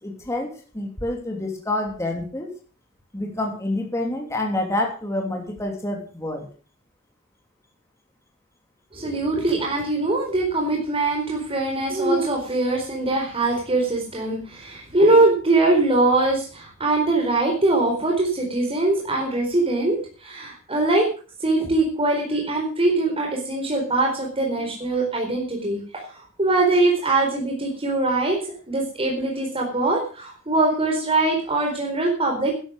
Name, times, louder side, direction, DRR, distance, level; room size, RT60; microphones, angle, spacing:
voice 1, 0.0-2.5 3.1-6.5 24.6-24.7, left 1 dB, 15° left, 1 dB, 3.1 m, -28 dB
voice 2, 8.9-21.1 21.4-25.8 26.1-28.4 28.7-32.5, right 2 dB, 25° right, 0 dB, 4.2 m, -22 dB
12.0 x 12.0 x 6.5 m, 0.39 s
head